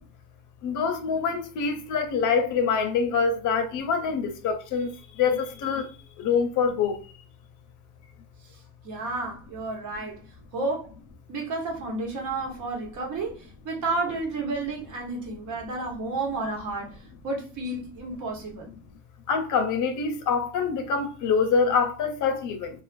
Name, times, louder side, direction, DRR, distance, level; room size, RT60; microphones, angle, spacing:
voice 1, 0.6-4.9 5.2-5.9 6.2-7.0 19.3-22.7, left 5 dB, 80° left, 0.7 m, -25 dB
voice 2, 8.8-10.2 10.5-10.9 11.3-18.7, right 3 dB, 80° right, 1.1 m, -31 dB
2.4 x 2.4 x 2.4 m
cardioid pair, 90°, 30 cm